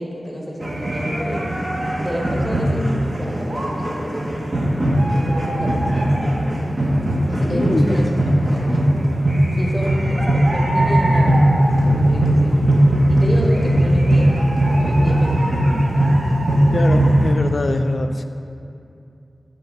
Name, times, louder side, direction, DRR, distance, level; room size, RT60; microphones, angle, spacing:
voice 1, 0.0-1.5 2.0-4.6 5.1-6.1 7.3-8.1 8.5-8.9 9.5-12.6 13.1-14.4 14.7-15.6, equal, 10° right, -2 dB, 1.2 m, -29 dB
sound 1, 0.6-17.3, right 1 dB, 55° right, 0.8 m, -18 dB
voice 2, 7.5-8.0 16.7-18.2, left 2 dB, 60° left, 7 dB, 0.3 m, -23 dB
7.5 x 3.3 x 5.1 m, 2.6 s
wide cardioid pair, 60°, 0 cm